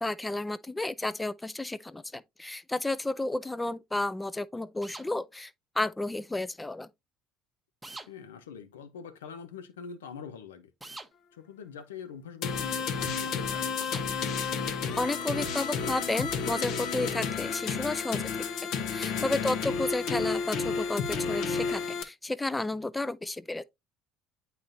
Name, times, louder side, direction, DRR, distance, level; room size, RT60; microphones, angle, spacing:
voice 1, 0.0-6.9 15.0-23.6, left 2 dB, 10° left, 0.4 m, -32 dB
sound 1, 4.8-5.1 7.8-8.1 10.8-11.1 13.8-14.1, right 2 dB, 10° right, 0.9 m, -43 dB
voice 2, 8.1-10.7 11.3-14.1 19.1-19.5, left 6 dB, 90° left, 0.8 m, -44 dB
sound 2, 12.4-22.0, left 5 dB, 60° left, 1.0 m, -31 dB
8.9 x 4.2 x 2.6 m
hypercardioid pair, 75°, 0 cm